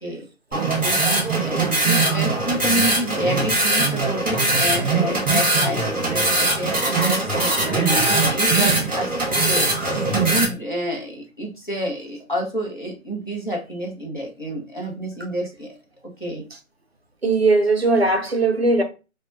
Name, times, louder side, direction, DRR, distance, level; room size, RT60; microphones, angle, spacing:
voice 1, 0.5-1.0 1.4-9.7 10.2-15.7 16.2-16.4, equal, 35° left, 0.6 m, -29 dB
sound 1, 0.5-10.4, right 2 dB, 10° left, 1.1 m, -21 dB
voice 2, 17.2-18.8, right 3 dB, 50° right, 0.4 m, -19 dB
2.5 x 2.1 x 3.1 m
figure-of-eight pair, 175°, 43 cm